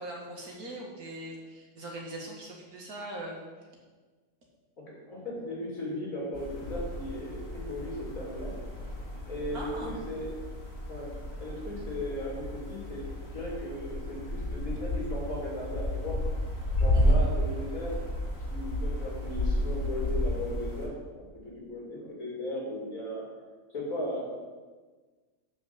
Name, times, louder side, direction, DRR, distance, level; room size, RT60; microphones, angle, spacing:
voice 1, 0.0-3.4 9.5-9.9 10.2-10.3 16.9-17.1, right 1 dB, 85° right, -1 dB, 2.2 m, -41 dB
voice 2, 4.8-8.5 9.3-10.3 10.9-11.1 11.4-16.2 16.8-18.1 18.5-23.2 23.7-24.3, left 1 dB, 70° left, -4 dB, 3.0 m, -37 dB
sound 1, 6.3-20.9, left 1 dB, 45° left, 2.2 m, -32 dB
7.2 x 5.8 x 6.8 m, 1.4 s
omnidirectional pair, 1.5 m